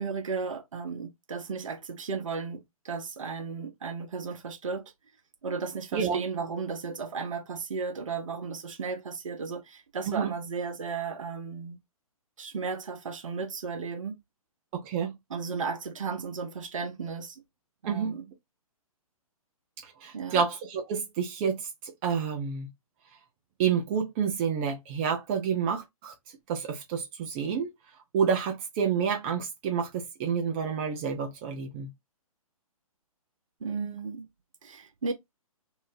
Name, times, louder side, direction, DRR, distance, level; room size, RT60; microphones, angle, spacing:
voice 1, 0.0-4.9 5.4-11.8 12.4-14.2 15.3-17.4 17.8-18.2 20.1-20.4 33.6-34.3 34.6-35.1, right 5 dB, 60° right, 0.7 m, -34 dB
voice 2, 14.7-15.1 17.9-18.2 19.8-22.7 23.6-26.1 26.5-27.7 28.1-31.9, right 7 dB, 20° right, 0.4 m, -29 dB
2.7 x 2.0 x 3.0 m
figure-of-eight pair, 125°, 19 cm